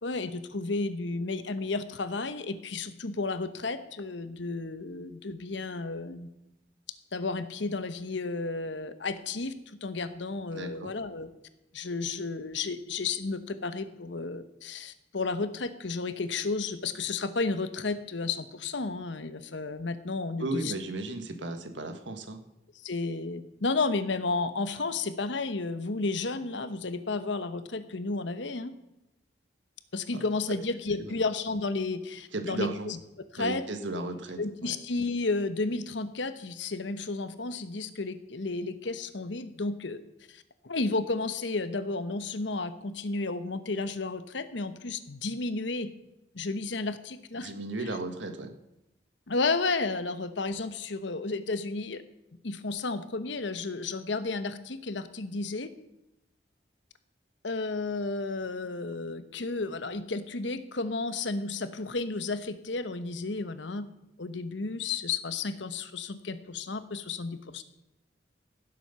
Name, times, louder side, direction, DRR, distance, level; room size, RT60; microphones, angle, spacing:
voice 1, 0.0-6.3 7.1-9.5 9.8-11.3 11.7-20.7 22.8-28.7 29.9-33.0 33.3-33.6 34.4-40.0 40.3-45.9 46.3-47.5 49.3-52.0 52.4-55.7 57.4-63.9 64.2-67.6, left 3 dB, 75° left, 12 dB, 1.0 m, -32 dB
voice 2, 10.5-10.9 20.4-22.4 31.0-31.2 32.3-32.9 33.4-34.7 47.3-48.5, right 2 dB, 80° right, 7 dB, 1.6 m, -35 dB
17.0 x 7.7 x 5.6 m, 0.90 s
head